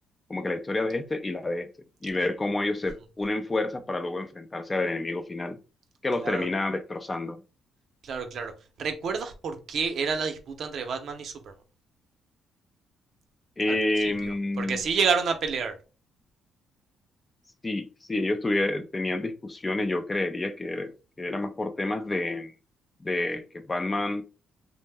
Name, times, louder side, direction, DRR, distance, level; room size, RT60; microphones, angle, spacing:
voice 1, 0.3-1.7 2.0-5.6 6.0-7.4 13.6-14.8 17.6-22.5 23.0-24.2, left 2 dB, 20° left, 0.4 m, -29 dB
voice 2, 8.0-8.5 8.8-11.5 13.7-15.8, right 5 dB, 60° right, 0.6 m, -29 dB
2.6 x 2.1 x 3.3 m
cardioid pair, 90°, 0 cm